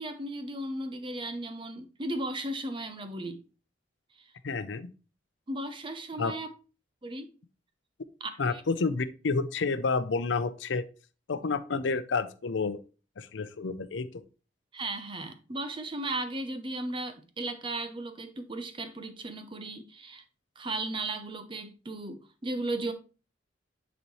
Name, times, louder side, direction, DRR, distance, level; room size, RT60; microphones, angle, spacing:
voice 1, 0.0-3.4 5.5-6.5 7.0-7.3 8.2-8.6 11.3-11.4 14.7-20.2 20.6-22.9, right 2 dB, 25° right, 0.8 m, -36 dB
voice 2, 4.4-4.9 6.2-6.3 8.4-10.8 11.3-12.8 13.2-14.2, left 4 dB, 80° left, 0.6 m, -30 dB
9.8 x 4.2 x 3.1 m
head